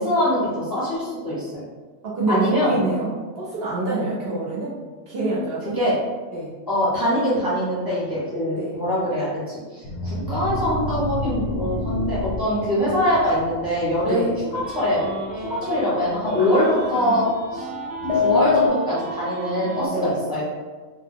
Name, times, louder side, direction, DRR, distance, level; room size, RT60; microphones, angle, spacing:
voice 1, 0.0-1.5 2.3-2.8 5.7-5.9 6.7-15.0 15.3-17.7 18.1-20.4, equal, 20° left, -9 dB, 0.6 m, -23 dB
voice 2, 2.0-4.7 5.1-5.8 6.3-6.5 8.6-8.7 14.1-14.3 16.4-17.2 19.9-20.2, right 2 dB, 60° right, -6 dB, 0.8 m, -26 dB
sound 1, 9.8-17.2 18.0-18.7, left 3 dB, 65° left, 0.7 m, -28 dB
sound 2, 14.5-15.9 16.3-19.9, right 2 dB, 80° right, 1.0 m, -34 dB
2.2 x 2.1 x 3.4 m, 1.4 s
omnidirectional pair, 1.3 m